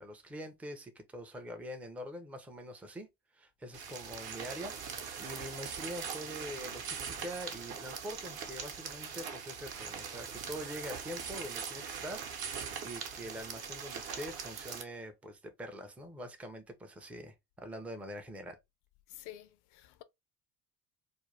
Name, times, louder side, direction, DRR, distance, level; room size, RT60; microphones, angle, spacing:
voice 1, 0.0-3.1 3.3-12.3 12.8-18.6, equal, 5° right, 0.4 m, -44 dB
sound 1, 3.7-14.8, right 6 dB, 50° right, 0.8 m, -41 dB
voice 2, 19.1-20.0, left 13 dB, 55° left, 0.5 m, -50 dB
2.5 x 2.2 x 3.1 m
hypercardioid pair, 60°, 49 cm